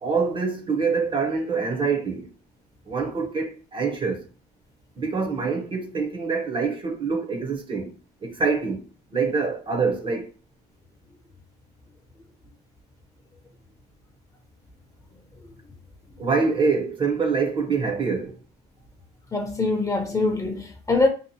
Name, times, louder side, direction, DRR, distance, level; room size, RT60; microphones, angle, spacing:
voice 1, 0.0-2.3 2.9-4.3 5.0-7.9 8.2-8.9 9.1-10.3 16.2-18.4, right 4 dB, 30° right, 0.6 m, -25 dB
voice 2, 19.3-21.1, left 3 dB, 20° left, 0.6 m, -23 dB
2.7 x 2.4 x 2.7 m
cardioid pair, 110°, 17 cm